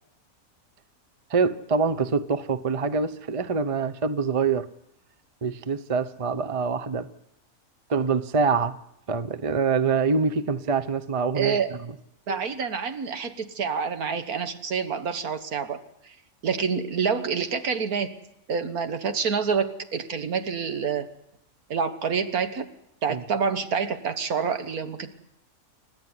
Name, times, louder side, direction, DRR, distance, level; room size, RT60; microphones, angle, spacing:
voice 1, 1.3-4.7 5.4-7.1 7.9-8.7 9.1-11.6 23.1-23.2, right 5 dB, 30° right, 0.8 m, -25 dB
voice 2, 11.3-11.7 12.3-16.2 16.4-18.1 18.5-21.1 21.7-22.7 23.0-25.1, right 6 dB, 75° right, 1.9 m, -27 dB
29.5 x 13.5 x 9.8 m
omnidirectional pair, 1.6 m